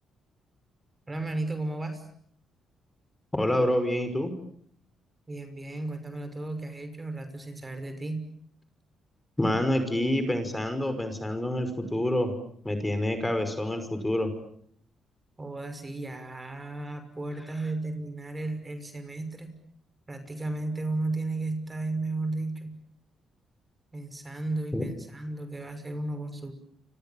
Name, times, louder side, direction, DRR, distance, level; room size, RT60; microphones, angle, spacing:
voice 1, 1.1-2.0 5.3-8.3 15.4-19.6 20.1-22.8 23.9-26.5, right 2 dB, 20° right, 9 dB, 5.9 m, -34 dB
voice 2, 3.3-4.3 9.4-12.3 12.6-14.3 24.7-24.8, left 1 dB, 10° left, 8 dB, 5.5 m, -27 dB
30.0 x 26.5 x 7.3 m, 0.65 s
cardioid pair, 90°, 0 cm